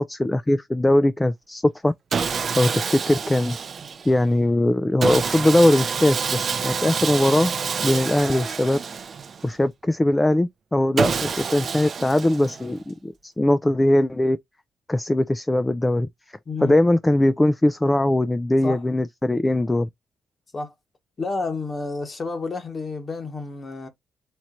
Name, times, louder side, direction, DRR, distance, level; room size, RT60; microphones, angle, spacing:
voice 1, 0.0-1.9 2.3-3.6 4.1-7.5 7.8-8.8 9.4-14.4 14.9-16.1 16.6-19.9, left 1 dB, 15° left, 0.3 m, -20 dB
Sawing, 2.1-4.2 5.0-9.5 11.0-12.8, right 6 dB, 45° right, 0.5 m, -27 dB
voice 2, 16.5-16.8 18.6-18.8 20.5-20.7 21.2-23.9, left 3 dB, 35° left, 1.1 m, -30 dB
4.3 x 3.0 x 2.5 m
cardioid pair, 90°, 0 cm